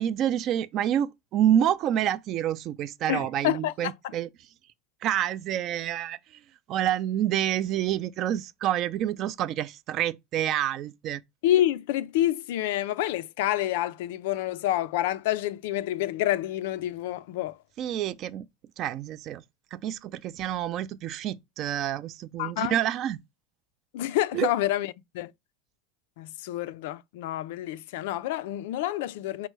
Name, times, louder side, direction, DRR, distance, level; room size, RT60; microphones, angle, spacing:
voice 1, 0.0-4.3 5.0-6.4 6.7-11.2 17.8-18.5 18.8-19.4 19.7-23.2 24.3-24.5, right 11 dB, 35° right, 0.3 m, -28 dB
voice 2, 3.1-3.7 11.4-17.6 22.4-22.8 23.9-25.3 26.2-29.5, left 13 dB, 70° left, 0.3 m, -28 dB
5.4 x 2.0 x 4.5 m
supercardioid pair, 175°, 0 cm